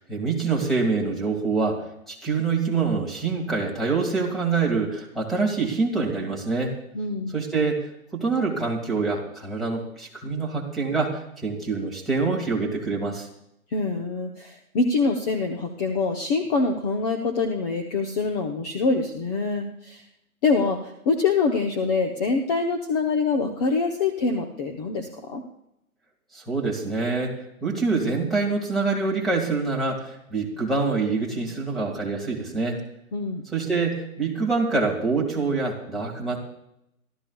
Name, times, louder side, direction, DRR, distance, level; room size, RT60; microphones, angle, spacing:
voice 1, 0.0-6.7 7.3-13.3 26.3-27.3 27.6-32.8 33.5-36.4, right 4 dB, ahead, -1 dB, 2.0 m, -25 dB
voice 2, 6.9-7.4 13.7-20.0 20.4-25.4 33.1-33.4, left 4 dB, 25° left, 2 dB, 0.9 m, -25 dB
26.5 x 13.0 x 2.3 m, 0.80 s
hypercardioid pair, 150°, 44 cm